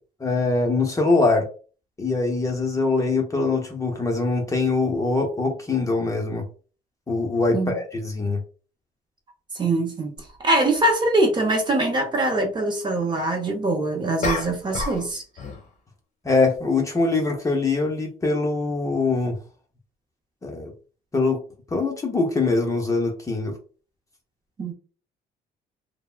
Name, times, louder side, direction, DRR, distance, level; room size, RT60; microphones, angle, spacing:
voice 1, 0.2-1.5 2.0-6.4 7.1-8.4 16.2-19.4 20.4-20.7 21.1-21.4 21.7-23.6, left 3 dB, 20° left, 0.7 m, -23 dB
voice 2, 9.5-10.1 10.4-15.2 24.6-24.7, right 2 dB, 25° right, 0.7 m, -23 dB
sound 1, 10.2-10.3 14.2-15.1 15.4-15.7, left 3 dB, 45° left, 0.9 m, -28 dB
3.3 x 2.1 x 2.4 m
cardioid pair, 110°, 17 cm